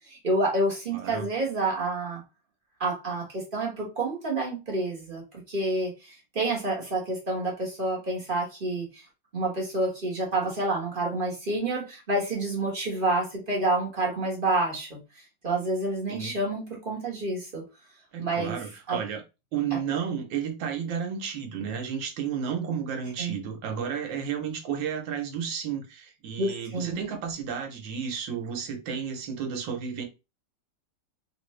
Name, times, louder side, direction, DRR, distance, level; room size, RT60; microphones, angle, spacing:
voice 1, 0.1-2.2 2.8-5.2 5.5-9.0 9.3-15.0 15.4-17.6 18.2-18.6 18.9-19.0 19.7-19.8 23.2-23.4 26.4-27.0, right 2 dB, 30° right, 1.2 m, -28 dB
voice 2, 0.9-1.3 16.1-16.3 18.1-19.2 19.5-30.0, right 7 dB, 85° right, 1.5 m, -32 dB
3.7 x 2.5 x 3.1 m
omnidirectional pair, 2.0 m